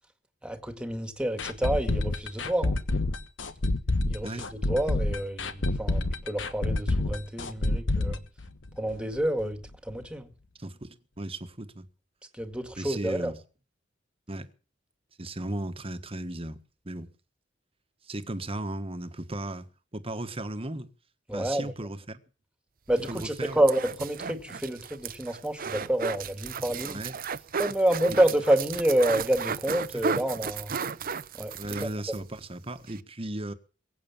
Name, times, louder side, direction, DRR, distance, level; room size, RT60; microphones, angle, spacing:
voice 1, 0.4-2.8 4.1-8.2 8.8-9.6 9.8-10.3 12.3-13.3 21.3-21.7 22.9-27.0 27.6-30.7 31.3-31.5 31.8-32.2, right 1 dB, 5° right, 2.0 m, -28 dB
sound 1, 1.4-9.1 9.4-9.5 9.9-10.0, left 2 dB, 70° left, 1.3 m, -28 dB
voice 2, 10.6-11.9 12.8-13.4 14.3-14.5 15.2-17.1 18.0-19.7 19.9-20.9 21.3-22.2 23.1-23.6 26.9-27.2 29.9-30.3 31.6-33.5, right 1 dB, 30° right, 1.4 m, -36 dB
sound 2, 22.9-32.2 32.5-32.6 32.9-33.0, right 6 dB, 50° right, 0.7 m, -35 dB
22.5 x 8.6 x 7.2 m
head